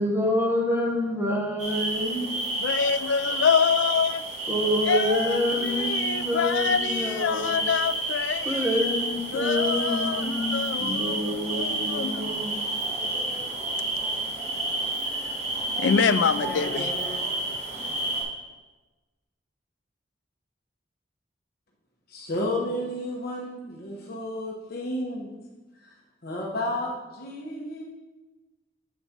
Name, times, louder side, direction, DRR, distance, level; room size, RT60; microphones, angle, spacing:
voice 1, 0.0-2.3 4.5-7.7 8.4-12.5, left 1 dB, 15° right, -1 dB, 1.3 m, -27 dB
sound 1, 1.6-18.2, right 2 dB, 40° right, 2.7 m, -30 dB
voice 2, 2.6-4.2 4.9-8.7 9.3-12.3 15.8-16.9, left 6 dB, 75° left, 13 dB, 0.4 m, -26 dB
voice 3, 16.4-17.2 22.1-25.3 25.8-25.9 26.2-27.8, left 1 dB, 55° left, -2 dB, 1.1 m, -32 dB
8.5 x 4.1 x 5.9 m, 1.2 s
head